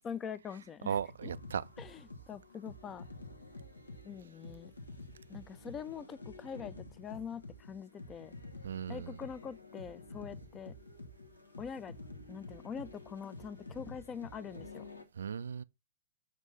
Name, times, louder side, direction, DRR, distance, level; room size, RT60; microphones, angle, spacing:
voice 1, 0.0-1.3 1.8-3.0 4.0-4.7 5.3-8.3 8.9-10.8 11.6-12.0 12.3-14.9, left 7 dB, 20° left, 0.5 m, -44 dB
sound 1, 0.9-15.0, left 2 dB, 85° left, 1.0 m, -49 dB
voice 2, 0.9-1.6 8.6-9.2 15.2-15.6, right 7 dB, 70° right, 0.3 m, -36 dB
7.4 x 2.7 x 5.3 m
figure-of-eight pair, 110°, 0 cm